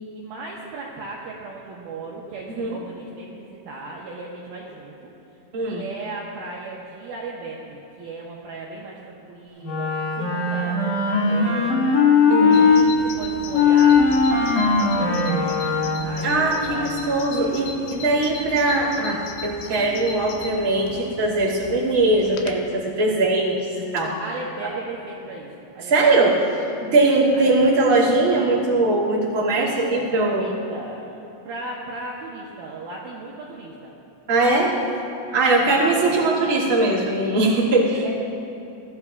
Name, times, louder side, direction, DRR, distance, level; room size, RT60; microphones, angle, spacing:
voice 1, 0.1-5.1 5.6-15.6 16.0-16.9 17.3-17.7 24.2-26.1 27.0-27.6 29.6-33.9 34.6-34.8 35.2-36.0 38.0-38.1, right 3 dB, 85° right, -3 dB, 2.1 m, -37 dB
Wind instrument woodwind instrument, 9.6-12.9 13.5-16.3, left 5 dB, 55° left, 2.5 m, -19 dB
voice 2, 12.3-12.6 16.2-24.2 24.6-24.7 25.9-26.3 26.8-30.5 34.3-34.7 35.3-38.1, right 2 dB, 35° right, -7 dB, 1.4 m, -20 dB
Bird vocalization bird call bird song, 12.5-22.6, left 5 dB, 80° left, 3.0 m, -37 dB
23.0 x 14.5 x 2.4 m, 2.8 s
omnidirectional pair, 5.7 m